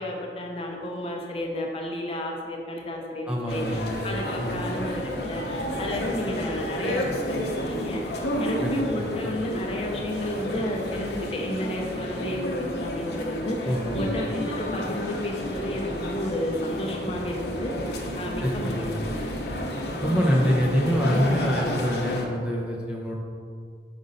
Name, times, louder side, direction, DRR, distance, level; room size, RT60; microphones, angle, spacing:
voice 1, 0.0-7.4 7.7-19.4, left 1 dB, 30° left, 0 dB, 0.7 m, -32 dB
voice 2, 3.3-3.9 4.4-4.7 8.6-9.1 13.6-14.1 18.4-18.8 20.0-23.1, equal, 5° right, -3 dB, 0.6 m, -25 dB
sound 1, 3.5-22.2, left 1 dB, 65° left, 0.8 m, -31 dB
5.3 x 5.1 x 4.0 m, 2.1 s
head